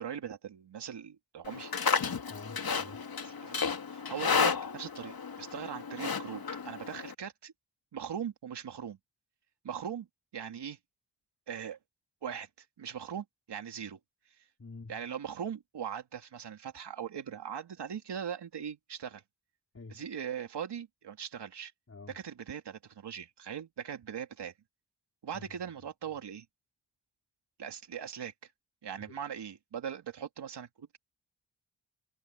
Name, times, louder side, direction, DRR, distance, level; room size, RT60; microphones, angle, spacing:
voice 1, 0.0-1.7 3.2-3.6 3.9-7.5 7.9-9.0 9.6-10.1 10.3-10.8 11.5-11.8 12.2-12.5 12.8-14.0 14.9-19.2 19.9-21.7 22.1-24.5 25.2-26.5 27.6-28.5 28.8-31.0, right 8 dB, 85° right, 2.8 m, -40 dB
Livestock farm animals working animals, 1.5-7.1, left 6 dB, 60° left, 2.6 m, -32 dB
voice 2, 2.3-3.1 14.6-15.0 19.7-20.0 21.9-22.2 25.3-25.5 29.0-29.2, left 3 dB, 40° left, 4.1 m, -48 dB
cardioid pair, 55°, 40 cm